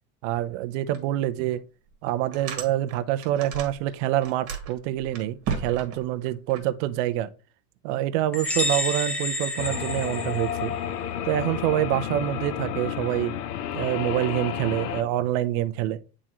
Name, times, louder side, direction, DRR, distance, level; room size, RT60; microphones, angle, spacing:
voice 1, 0.2-1.6 2.0-7.3 7.8-10.7 11.3-13.3 13.7-16.0, right 13 dB, 55° right, 0.6 m, -26 dB
sound 1, 0.9-1.0 1.5-1.6 2.1-3.9 4.2-6.6, right 6 dB, 30° right, 1.4 m, -34 dB
sound 2, 8.3-10.9, left 1 dB, 5° left, 0.4 m, -29 dB
sound 3, 9.6-15.0, left 9 dB, 90° left, 0.8 m, -31 dB
8.7 x 3.7 x 2.9 m
supercardioid pair, 140°, 46 cm